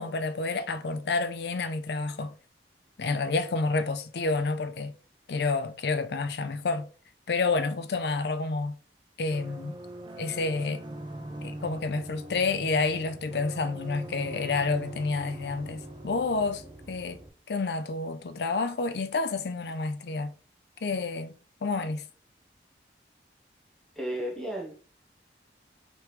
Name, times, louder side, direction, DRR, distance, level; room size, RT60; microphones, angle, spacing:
voice 1, 0.0-2.3 3.0-4.9 5.3-6.9 7.3-8.8 9.2-9.8 10.2-10.8 11.4-17.2 17.5-20.3 20.8-22.0, left 3 dB, 65° left, 0.5 m, -29 dB
sound 1, 9.3-17.3, right 1 dB, 25° right, 0.5 m, -42 dB
voice 2, 24.0-24.8, equal, 5° left, 0.9 m, -33 dB
4.5 x 3.0 x 3.2 m
head